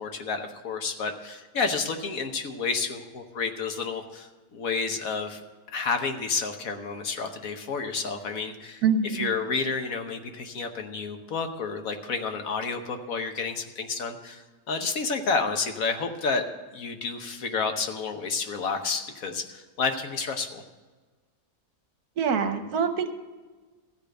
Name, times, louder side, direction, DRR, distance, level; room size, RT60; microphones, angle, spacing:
voice 1, 0.0-5.4 5.7-16.4 16.7-20.6, left 4 dB, 60° left, 5 dB, 1.3 m, -30 dB
voice 2, 8.8-9.3 22.2-23.1, right 6 dB, 75° right, 8 dB, 1.4 m, -25 dB
14.5 x 5.1 x 7.6 m, 1.3 s
omnidirectional pair, 1.7 m